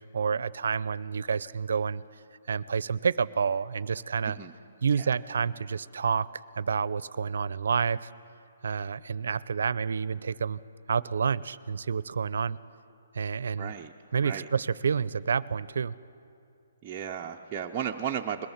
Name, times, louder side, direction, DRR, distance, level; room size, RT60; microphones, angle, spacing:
voice 1, 0.0-2.0 2.5-4.4 4.8-6.3 6.6-8.1 8.6-10.6 10.9-12.6 13.1-13.7 14.1-16.0, right 6 dB, 70° right, 19 dB, 0.5 m, -29 dB
voice 2, 13.6-13.9 14.2-14.5 16.8-18.5, right 8 dB, 15° right, -2 dB, 0.5 m, -34 dB
21.5 x 17.5 x 7.2 m, 2.6 s
hypercardioid pair, 175°, 0 cm